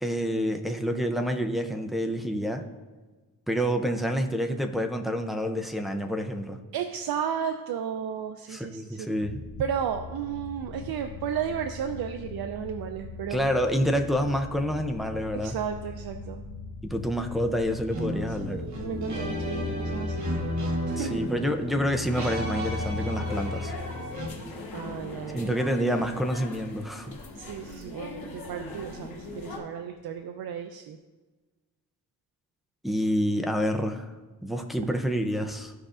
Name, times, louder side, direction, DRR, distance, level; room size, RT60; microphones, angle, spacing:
voice 1, 0.0-2.7 3.5-6.6 8.5-9.4 13.3-15.6 16.9-18.6 21.0-23.7 25.3-27.1 32.8-34.0 34.4-35.7, equal, ahead, 3 dB, 0.4 m, -28 dB
voice 2, 6.7-9.1 9.6-13.4 15.4-16.4 18.5-20.3 20.9-21.2 24.7-25.6 27.4-31.0, right 8 dB, 80° right, 6 dB, 0.5 m, -33 dB
sound 1, 9.2-22.1, left 4 dB, 60° left, 0.8 m, -42 dB
sound 2, 17.9-24.3, left 1 dB, 50° right, 1.3 m, -32 dB
sound 3, 22.1-29.6, left 3 dB, 90° left, 1.9 m, -41 dB
15.0 x 5.0 x 2.4 m, 1.3 s
wide cardioid pair, 180°, 36 cm